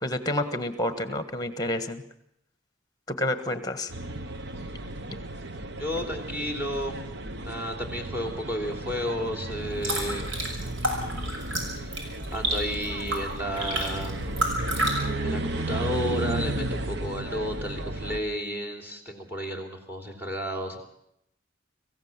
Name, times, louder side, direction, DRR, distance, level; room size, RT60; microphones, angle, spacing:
voice 1, 0.0-2.0 3.1-3.9, left 1 dB, 20° left, 11 dB, 1.4 m, -29 dB
sound 1, 3.9-18.2, right 2 dB, 55° right, 1.0 m, -34 dB
voice 2, 5.8-7.0 7.4-10.2 12.3-14.1 14.7-20.8, equal, 10° right, 4 dB, 3.2 m, -32 dB
sound 2, 9.6-14.9, right 1 dB, 75° right, 6.1 m, -31 dB
25.5 x 15.5 x 7.4 m, 0.79 s
head